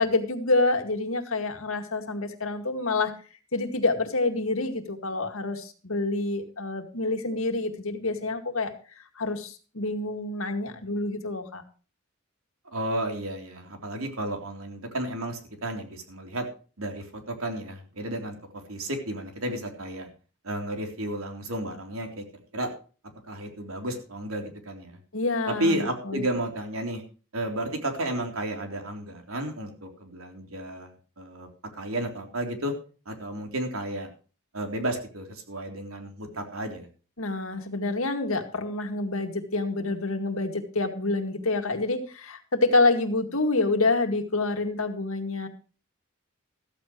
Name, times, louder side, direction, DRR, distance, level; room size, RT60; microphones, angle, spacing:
voice 1, 0.0-3.1 3.5-8.7 9.2-11.6 25.1-26.3 37.2-45.5, left 2 dB, 75° left, 6 dB, 2.1 m, -27 dB
voice 2, 12.7-16.5 16.8-18.4 18.7-20.1 20.4-22.2 22.5-22.7 23.3-25.0 25.5-27.0 27.3-32.7 33.1-34.1 34.5-36.9, right 1 dB, 80° right, 4 dB, 3.6 m, -32 dB
14.5 x 14.5 x 3.1 m, 0.37 s
head